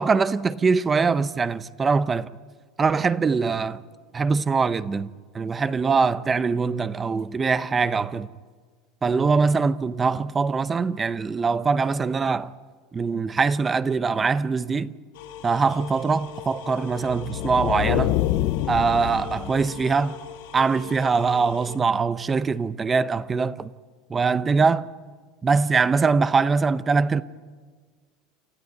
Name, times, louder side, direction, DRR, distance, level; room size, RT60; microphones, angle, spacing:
voice 1, 0.0-2.3 2.8-3.8 4.1-5.1 5.3-8.3 9.0-12.5 12.9-14.9 15.4-18.2 18.7-20.2 20.5-23.7 24.1-24.9 25.4-27.2, right 4 dB, 20° right, 0.7 m, -22 dB
sound 1, 15.1-21.8, left 9 dB, 90° left, 2.5 m, -41 dB
sound 2, 17.0-20.0, left 14 dB, 60° left, 0.8 m, -26 dB
28.0 x 14.0 x 9.3 m
supercardioid pair, 130°, 0 cm